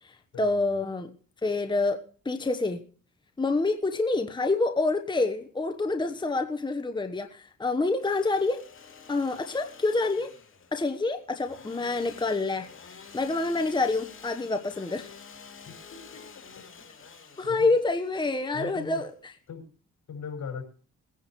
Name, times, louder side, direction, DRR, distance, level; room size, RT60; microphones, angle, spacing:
voice 1, 0.0-1.1 1.4-2.8 3.4-8.6 9.1-10.3 10.7-12.7 13.1-15.1 17.4-19.3, left 3 dB, 15° left, 1.1 m, -27 dB
Engine / Sawing, 7.8-19.5, left 5 dB, 45° left, 2.8 m, -50 dB
voice 2, 15.6-16.3 16.5-16.6 17.4-17.7 18.5-19.0 19.5-19.7 20.1-20.6, left 6 dB, 65° left, 6.0 m, -39 dB
21.5 x 10.5 x 3.1 m
cardioid pair, 90°, 30 cm